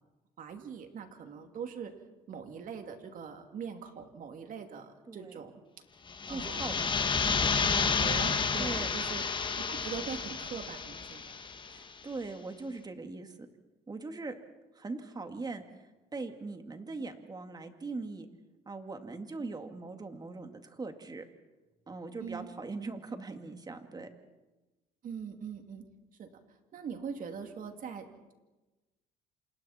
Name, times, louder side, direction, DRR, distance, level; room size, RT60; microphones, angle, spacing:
voice 1, 0.4-1.9 2.3-5.5 6.3-6.8 7.3-9.2 9.5-11.2 22.2-22.5 25.0-25.8 26.2-26.3 26.7-28.3, right 6 dB, 55° right, 5 dB, 2.9 m, -42 dB
voice 2, 5.1-5.4 6.3-6.9 8.6-9.0 11.7-13.4 13.9-14.3 14.7-18.3 18.7-21.2 21.9-24.1, right 3 dB, 25° right, 6 dB, 2.2 m, -41 dB
sound 1, 6.1-11.8, left 5 dB, 30° left, 1.6 m, -31 dB
27.5 x 27.5 x 4.4 m, 1.1 s
cardioid pair, 110°, 17 cm